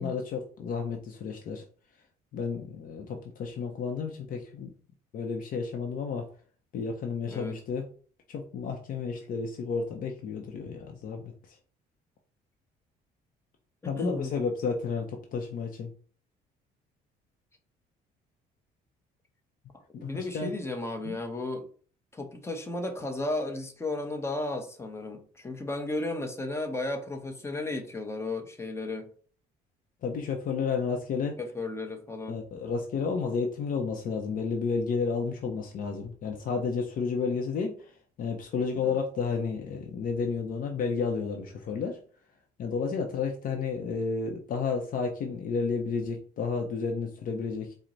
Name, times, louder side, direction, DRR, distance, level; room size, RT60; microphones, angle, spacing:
voice 1, 0.0-1.6 2.3-4.7 5.1-6.3 6.7-7.9 8.3-11.6 13.9-15.9 19.9-20.5 21.0-21.2 30.0-31.4 32.3-37.8 38.2-42.0 42.6-47.7, left 5 dB, 55° left, 3 dB, 0.6 m, -31 dB
voice 2, 7.3-7.6 13.8-14.3 19.9-21.7 22.1-29.1 31.4-32.4 38.8-39.0, left 2 dB, 15° left, 5 dB, 0.8 m, -34 dB
4.4 x 2.1 x 3.8 m, 0.43 s
cardioid pair, 110°, 17 cm